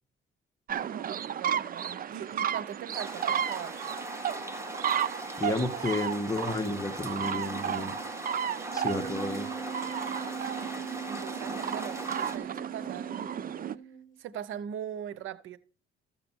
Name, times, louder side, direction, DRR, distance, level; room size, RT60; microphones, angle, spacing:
sound 1, 0.7-13.8, right 9 dB, 45° right, 0.6 m, -34 dB
voice 1, 0.8-3.8 11.0-13.3 14.2-15.6, right 9 dB, 85° right, 0.8 m, -40 dB
sound 2, 2.9-12.4, right 1 dB, 15° right, 1.6 m, -40 dB
voice 2, 5.4-8.0 8.7-9.5, left 2 dB, 15° left, 1.5 m, -31 dB
Wind instrument woodwind instrument, 8.7-14.2, right 6 dB, 40° left, 1.3 m, -41 dB
14.0 x 6.8 x 4.5 m
cardioid pair, 90°, 20 cm